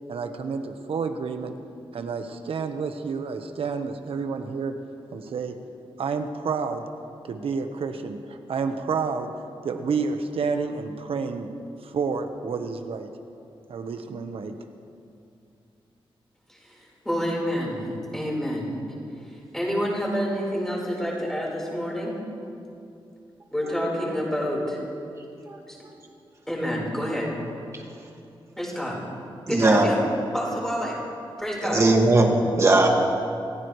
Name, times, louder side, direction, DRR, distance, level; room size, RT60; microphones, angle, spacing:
voice 1, 0.1-1.5 1.9-4.7 5.1-5.5 6.0-6.8 7.3-9.3 9.6-11.5 11.8-13.1 13.7-14.5, right 5 dB, 80° right, 6 dB, 1.2 m, -29 dB
voice 2, 16.5-18.8 19.2-22.2 23.5-24.8 25.7-25.8 26.5-27.3 28.6-29.0 29.5-30.0 30.3-31.0 31.4-31.8, equal, 5° left, -4 dB, 4.6 m, -28 dB
voice 3, 29.5-29.9 31.6-32.9, right 2 dB, 30° right, 0 dB, 2.1 m, -19 dB
27.5 x 15.5 x 3.3 m, 2.6 s
wide cardioid pair, 155°, 10 cm